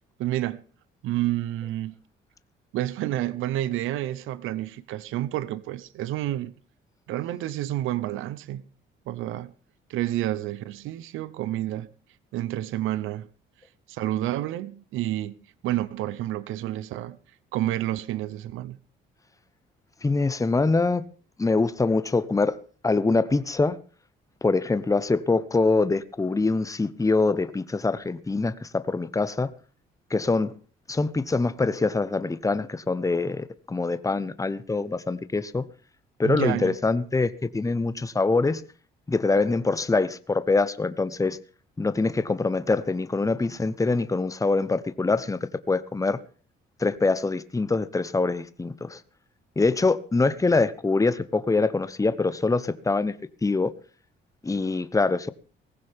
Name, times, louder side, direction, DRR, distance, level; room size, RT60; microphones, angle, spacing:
voice 1, 0.2-0.6 1.0-1.9 2.7-6.5 7.1-8.6 9.1-9.5 9.9-11.9 12.3-13.3 13.9-15.3 15.6-17.2 17.5-18.8 36.2-36.8, right 14 dB, 90° right, 0.8 m, -29 dB
voice 2, 20.0-21.1 21.4-22.6 22.8-23.8 24.4-29.5 30.1-30.5 30.9-35.6 36.2-38.6 39.1-41.4 41.8-45.4 45.7-46.2 46.8-49.0 49.6-53.1 53.4-53.7 54.4-55.3, left 3 dB, 15° left, 1.0 m, -24 dB
18.5 x 15.5 x 3.6 m
cardioid pair, 90°, 20 cm